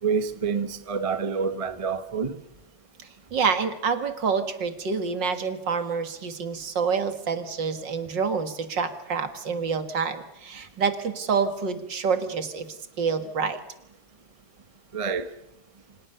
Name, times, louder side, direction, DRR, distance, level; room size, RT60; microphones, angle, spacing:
voice 1, 0.0-2.4 14.9-15.3, right 5 dB, 25° right, 0.8 m, -27 dB
voice 2, 3.3-13.6, right 5 dB, 60° right, 2.5 m, -27 dB
28.5 x 26.0 x 6.8 m
omnidirectional pair, 2.3 m